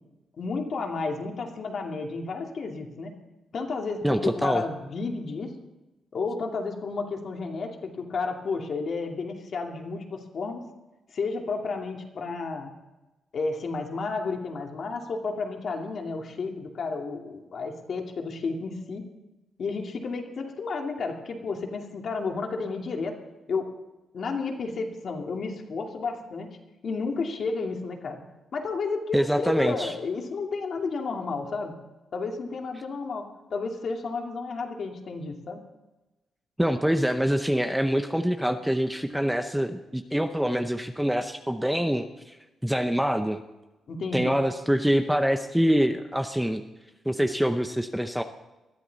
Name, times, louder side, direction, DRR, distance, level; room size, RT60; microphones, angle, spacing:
voice 1, 0.4-3.1 3.5-5.5 6.1-10.6 11.1-12.7 13.3-19.1 19.6-23.2 23.5-23.7 24.1-26.5 26.8-28.2 28.5-31.7 32.1-35.6 43.9-44.3, left 4 dB, 50° left, 2 dB, 2.4 m, -32 dB
voice 2, 4.0-4.6 29.1-29.9 36.6-42.3 42.6-43.4 44.1-46.6 47.1-48.2, equal, 5° right, 7 dB, 0.7 m, -25 dB
21.0 x 13.5 x 4.1 m, 1.1 s
wide cardioid pair, 150°, 0 cm